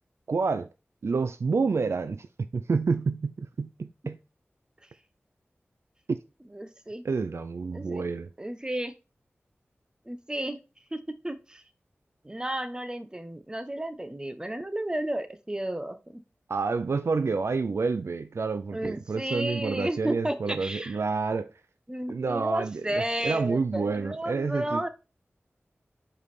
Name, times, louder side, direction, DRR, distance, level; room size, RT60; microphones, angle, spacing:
voice 1, 0.3-0.7 1.0-4.2 6.1-6.2 7.0-8.3 16.5-21.5 22.1-24.9, right 4 dB, 75° right, 0.4 m, -29 dB
voice 2, 6.5-7.0 7.7-8.1 8.4-8.9 10.1-10.6 10.9-11.6 12.2-16.2 18.7-21.0 21.9-24.9, right 1 dB, 20° right, 0.9 m, -32 dB
5.3 x 4.8 x 4.2 m
cardioid pair, 45°, 5 cm